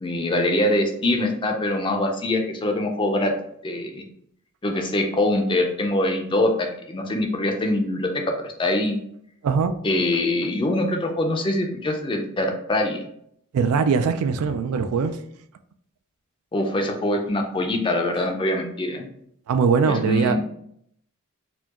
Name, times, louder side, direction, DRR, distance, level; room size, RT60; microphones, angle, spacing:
voice 1, 0.0-3.3 3.6-4.0 4.6-9.0 9.8-13.0 16.5-19.1 19.9-20.4, left 1 dB, 20° left, 3 dB, 0.4 m, -23 dB
voice 2, 9.4-9.7 13.5-15.2 19.5-20.5, right 5 dB, 80° right, 10 dB, 0.3 m, -21 dB
4.3 x 2.3 x 2.9 m, 0.70 s
head